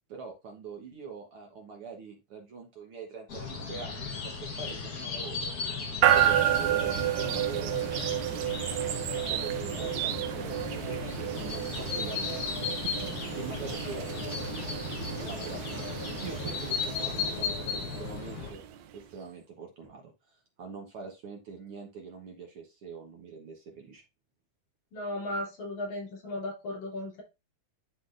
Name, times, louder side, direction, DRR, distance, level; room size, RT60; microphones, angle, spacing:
voice 1, 0.1-5.5 6.1-11.0 11.4-13.0 13.4-14.6 15.2-18.6 18.9-24.0, right 5 dB, 60° right, 1 dB, 1.7 m, -44 dB
sound 1, 3.3-18.5, left 5 dB, 60° left, 1.0 m, -36 dB
sound 2, 6.0-19.0, right 11 dB, 75° right, 1.8 m, -31 dB
voice 2, 24.9-27.2, left 1 dB, 75° left, -2 dB, 3.7 m, -35 dB
11.5 x 3.9 x 2.5 m, 0.25 s
omnidirectional pair, 3.4 m